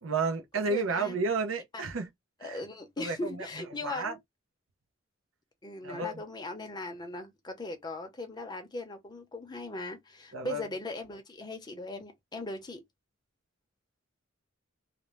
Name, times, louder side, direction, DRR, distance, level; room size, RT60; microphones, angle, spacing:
voice 1, 0.0-2.1 2.4-2.6 3.0-3.4 3.8-4.2 5.8-6.2 10.3-10.7, right 4 dB, 75° right, 0.6 m, -31 dB
voice 2, 0.6-1.2 1.7-1.8 2.4-4.2 5.6-12.8, left 2 dB, 20° left, 0.6 m, -39 dB
2.5 x 2.1 x 3.1 m
head